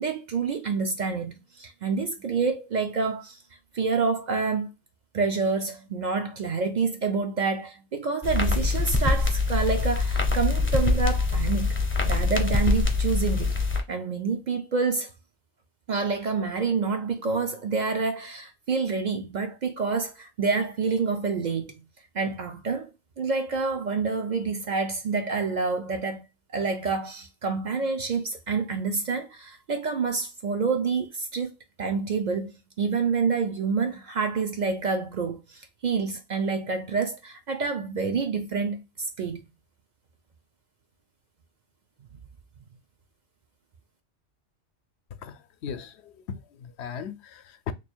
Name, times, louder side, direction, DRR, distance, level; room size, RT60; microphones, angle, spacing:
voice 1, 0.0-3.4 3.7-4.7 5.1-11.8 12.1-13.5 13.9-15.1 15.9-21.7 22.1-22.9 23.2-26.3 26.5-31.5 31.8-39.4, right 4 dB, 55° right, 0.5 m, -28 dB
sound 1, 8.2-13.8, left 3 dB, 15° left, 0.5 m, -24 dB
voice 2, 45.2-47.7, left 7 dB, 80° left, 0.8 m, -38 dB
3.1 x 2.2 x 4.2 m
omnidirectional pair, 1.1 m